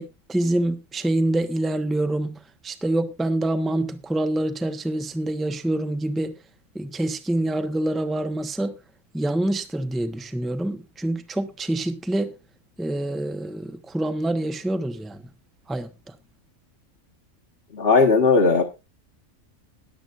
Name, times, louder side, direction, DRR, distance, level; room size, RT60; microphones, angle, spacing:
voice 1, 0.0-6.3 6.7-8.7 9.1-12.3 12.8-15.2 15.7-16.1, right 1 dB, ahead, 0.7 m, -26 dB
voice 2, 17.7-18.6, left 4 dB, 45° left, 1.5 m, -17 dB
21.0 x 7.9 x 2.5 m
omnidirectional pair, 1.5 m